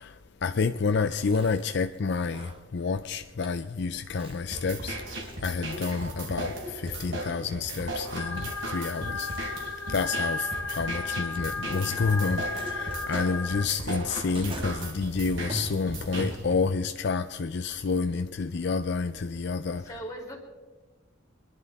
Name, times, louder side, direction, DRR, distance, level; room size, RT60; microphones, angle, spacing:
voice 1, 0.0-9.3 9.9-19.9, left 4 dB, 55° left, 0.4 m, -29 dB
Chewing mastication, 0.9-16.8, right 1 dB, 25° right, 1.4 m, -44 dB
sound 1, 4.5-16.5, right 1 dB, 65° right, 3.5 m, -37 dB
sound 2, 8.2-13.7, left 3 dB, 90° left, 1.1 m, -34 dB
voice 2, 14.8-15.1 19.8-20.4, right 1 dB, 15° left, 3.0 m, -41 dB
25.0 x 11.0 x 4.2 m
head